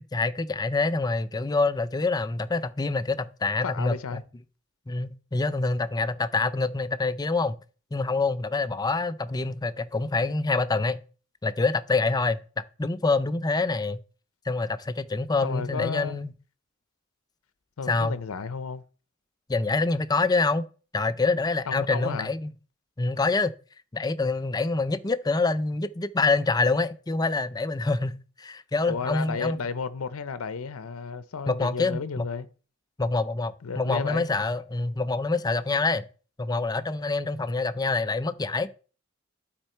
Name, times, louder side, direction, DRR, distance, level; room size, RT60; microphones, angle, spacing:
voice 1, 0.0-4.2 4.9-7.6 7.9-11.0 11.4-12.4 12.8-14.0 14.5-16.3 17.9-18.2 19.5-20.6 20.9-22.5 23.0-23.5 23.9-29.6 31.5-32.3 33.0-36.0 36.4-38.7, left 3 dB, 20° left, 0.4 m, -26 dB
voice 2, 3.6-4.2 15.4-16.2 17.8-18.8 21.7-22.3 28.9-32.5 33.6-34.3, left 5 dB, 85° left, 0.6 m, -33 dB
12.0 x 4.5 x 4.4 m
head